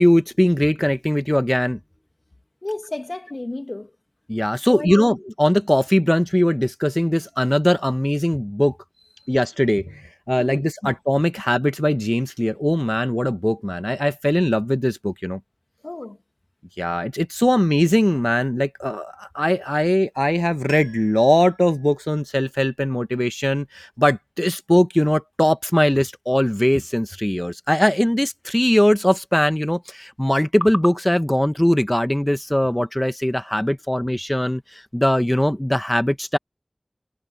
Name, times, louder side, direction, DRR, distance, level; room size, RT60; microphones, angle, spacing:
voice 1, 0.0-1.8 4.3-8.8 9.3-10.0 10.3-15.4 16.8-36.4, equal, 15° left, 0.9 m, -20 dB
voice 2, 2.6-3.9 4.7-5.2 9.2-9.3 10.4-10.9 15.8-16.2, left 2 dB, 75° left, 1.9 m, -32 dB
Piano, 20.7-22.8 23.0-23.1, right 1 dB, 50° right, 6.7 m, -48 dB
wide cardioid pair, 40°, 0 cm